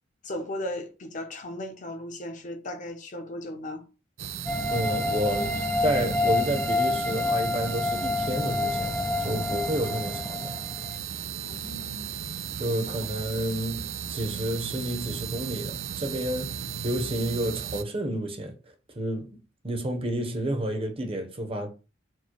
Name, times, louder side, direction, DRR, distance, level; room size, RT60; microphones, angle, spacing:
voice 1, 0.2-3.8 11.4-12.1 12.7-13.1, left 1 dB, 40° left, 0.8 m, -36 dB
sound 1, 4.2-17.8, right 8 dB, 80° right, 0.5 m, -35 dB
sound 2, 4.5-10.9, left 3 dB, 10° left, 0.3 m, -28 dB
voice 2, 4.7-5.5 5.8-10.6 12.6-18.5 18.9-19.4 19.6-21.7, right 1 dB, 30° right, 0.8 m, -30 dB
4.5 x 2.2 x 4.5 m
head